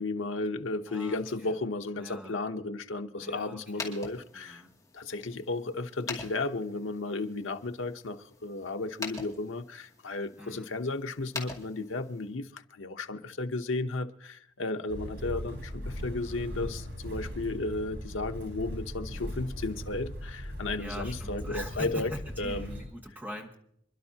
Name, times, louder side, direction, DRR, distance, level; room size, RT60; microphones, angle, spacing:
voice 1, 0.0-4.6 4.9-22.1 22.4-22.8, left 2 dB, 85° left, 0.9 m, -34 dB
voice 2, 0.9-1.6 2.0-2.4 3.2-4.0 4.3-4.7 10.4-10.7 20.8-23.5, equal, 10° right, 1.8 m, -42 dB
Push button, 3.6-12.4, left 3 dB, 15° left, 2.4 m, -45 dB
Motor vehicle (road), 14.9-22.8, equal, 90° right, 8.0 m, -39 dB
27.0 x 11.5 x 2.9 m
head